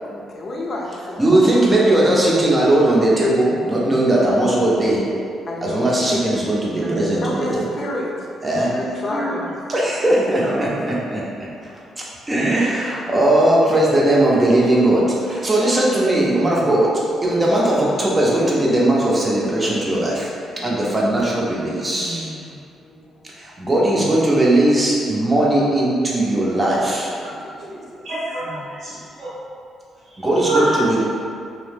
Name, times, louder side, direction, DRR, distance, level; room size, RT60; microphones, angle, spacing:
voice 1, 0.0-1.3 5.5-6.2 6.6-6.7 7.2-8.3 8.7-9.5 11.6-11.8 20.6-21.0 22.8-23.2 27.2-28.1, left 1 dB, 50° left, -2 dB, 0.5 m, -31 dB
voice 2, 1.2-5.0 5.6-7.6 8.4-9.4 9.7-11.2 12.0-16.9 17.2-20.3 20.6-22.5 23.4-27.1 30.2-30.6, right 1 dB, 20° right, -5 dB, 0.6 m, -18 dB
voice 3, 27.6-29.3 30.0-30.9, right 2 dB, 85° right, -11 dB, 0.7 m, -26 dB
2.7 x 2.0 x 3.2 m, 2.4 s
cardioid pair, 90°, 0 cm